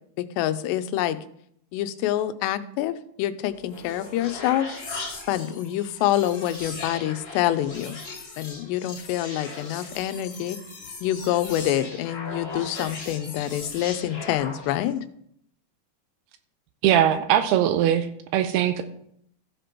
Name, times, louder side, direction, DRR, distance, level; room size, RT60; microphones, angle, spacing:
voice 1, 0.2-1.2 1.7-4.8 5.3-8.0 8.4-10.6 11.0-15.1, left 13 dB, 85° left, 11 dB, 2.8 m, -26 dB
sound 1, 3.5-15.0, left 3 dB, 35° left, 2.6 m, -39 dB
voice 2, 16.8-18.1 18.3-18.8, right 10 dB, 80° right, 9 dB, 2.4 m, -20 dB
15.5 x 5.1 x 4.5 m, 0.71 s
omnidirectional pair, 4.9 m